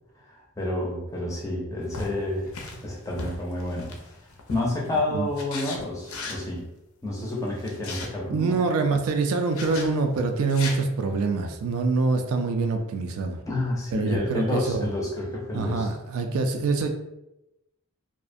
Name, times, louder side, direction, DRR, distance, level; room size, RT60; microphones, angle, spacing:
voice 1, 0.6-2.5 2.8-3.9 4.5-6.7 7.0-8.7 13.5-15.9, left 1 dB, 15° left, -3 dB, 0.4 m, -29 dB
sound 1, 1.9-4.9 5.4-6.5 7.5-8.1 9.5-9.9 10.4-10.8, left 3 dB, 75° left, 0.4 m, -37 dB
voice 2, 8.3-13.4 13.9-14.9 15.5-16.9, right 3 dB, 75° right, 6 dB, 0.3 m, -25 dB
2.4 x 2.0 x 2.5 m, 0.90 s
head